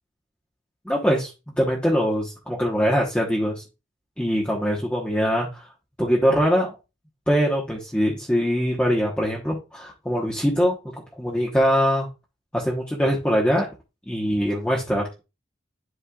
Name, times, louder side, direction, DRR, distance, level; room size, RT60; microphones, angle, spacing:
voice 1, 0.8-1.3 1.6-3.6 4.2-5.7 6.0-6.7 7.3-10.7 11.2-12.1 12.5-13.7 14.1-15.2, equal, 5° left, -3 dB, 1.1 m, -22 dB
11.0 x 4.3 x 2.4 m, 0.28 s
head